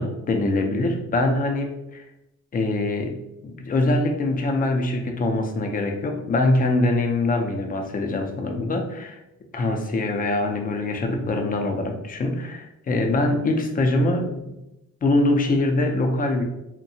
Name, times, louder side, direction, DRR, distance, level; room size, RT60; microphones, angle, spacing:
voice 1, 0.0-2.0 2.5-3.1 3.4-9.2 9.5-14.6 15.0-16.4, left 2 dB, 30° left, 4 dB, 0.4 m, -23 dB
2.7 x 2.1 x 2.6 m, 0.91 s
cardioid pair, 90°, 30 cm